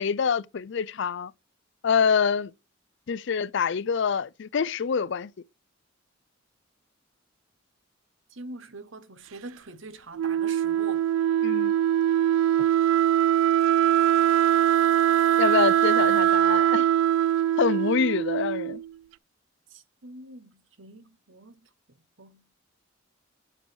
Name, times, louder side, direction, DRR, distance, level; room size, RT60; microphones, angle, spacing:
voice 1, 0.0-1.3 1.8-2.5 3.1-5.3 11.4-11.7 15.4-16.9 17.6-18.8, left 6 dB, 60° left, 0.4 m, -26 dB
voice 2, 8.3-11.1 19.7-21.6 22.2-22.4, right 2 dB, 70° right, 1.1 m, -44 dB
Wind instrument woodwind instrument, 10.1-18.9, right 11 dB, 85° right, 0.4 m, -22 dB
7.7 x 4.7 x 6.2 m
head